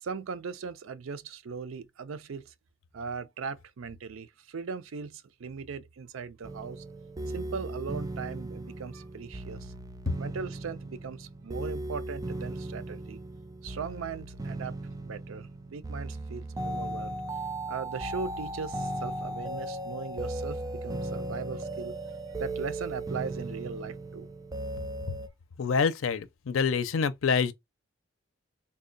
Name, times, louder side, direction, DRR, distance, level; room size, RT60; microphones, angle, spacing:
voice 1, 0.0-2.5 2.9-6.8 7.3-9.7 10.2-13.2 13.6-14.8 15.0-17.2 17.7-22.0 22.4-24.3, right 5 dB, 85° right, 0.5 m, -39 dB
sound 1, 6.4-25.3, right 1 dB, 20° right, 0.3 m, -37 dB
voice 2, 25.6-27.5, left 5 dB, 85° left, 0.5 m, -26 dB
3.5 x 2.2 x 3.8 m
head